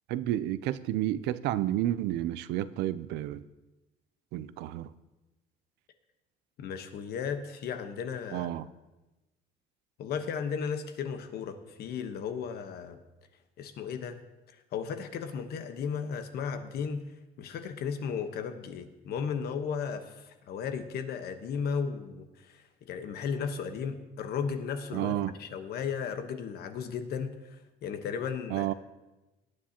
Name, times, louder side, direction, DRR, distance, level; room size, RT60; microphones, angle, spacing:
voice 1, 0.1-3.5 4.3-4.9 8.3-8.7 24.9-25.3 28.5-28.7, right 13 dB, 90° right, 15 dB, 0.5 m, -31 dB
voice 2, 6.6-8.6 10.0-13.0 13.6-14.2 14.7-17.0 17.4-28.7, left 6 dB, 70° left, 8 dB, 1.2 m, -35 dB
18.0 x 9.8 x 2.9 m, 1.1 s
cardioid pair, 110°, 17 cm